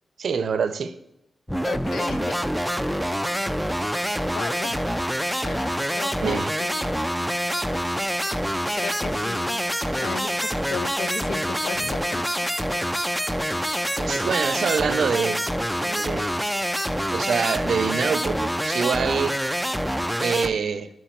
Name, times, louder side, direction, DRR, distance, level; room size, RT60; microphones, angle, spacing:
voice 1, 0.2-1.0 6.2-6.5 14.0-15.4 15.8-16.3 17.1-19.4 20.2-20.9, right 6 dB, 75° right, 12 dB, 0.5 m, -25 dB
sound 1, 1.5-20.5, equal, ahead, 0.3 m, -26 dB
voice 2, 1.6-3.0 4.3-7.1 8.7-9.6 9.9-12.5, left 6 dB, 85° left, 14 dB, 0.4 m, -36 dB
9.1 x 4.6 x 4.3 m, 0.87 s
cardioid pair, 85°, 0 cm